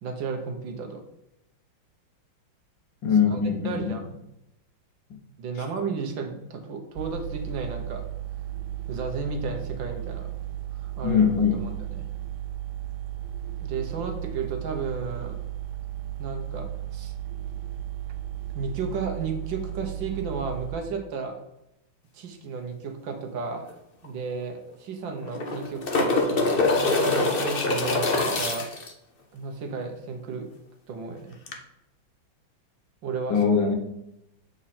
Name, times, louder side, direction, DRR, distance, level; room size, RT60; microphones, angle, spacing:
voice 1, 0.0-1.0 3.3-4.0 5.4-8.0 8.9-10.3 10.8-12.1 13.6-15.4 16.2-16.7 16.9-17.1 18.5-21.4 22.1-23.7 24.0-28.7 29.3-30.5 30.9-31.4 33.0-33.4, right 4 dB, 70° right, 4 dB, 1.7 m, -33 dB
voice 2, 3.0-3.9 11.0-11.6 33.3-33.7, left 6 dB, 65° left, 2 dB, 1.8 m, -22 dB
sound 1, 7.0-20.7, right 12 dB, 90° right, 1.5 m, -35 dB
sound 2, 23.7-23.8 24.0-24.1 25.2-28.9 31.5-31.6, left 3 dB, 50° left, 0.6 m, -24 dB
7.6 x 4.4 x 4.3 m, 0.83 s
omnidirectional pair, 2.2 m